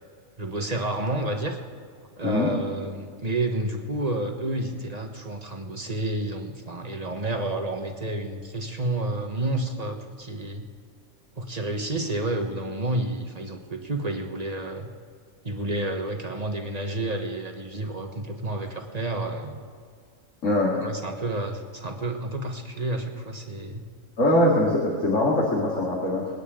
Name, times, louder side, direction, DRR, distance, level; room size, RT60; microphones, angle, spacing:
voice 1, 0.4-1.6 2.2-10.6 11.4-14.9 15.4-19.6 20.8-23.8, right 2 dB, 30° right, 4 dB, 1.3 m, -30 dB
voice 2, 20.4-20.8 24.2-26.3, left 1 dB, 70° left, -4 dB, 2.6 m, -22 dB
27.5 x 9.4 x 3.8 m, 2.2 s
omnidirectional pair, 1.4 m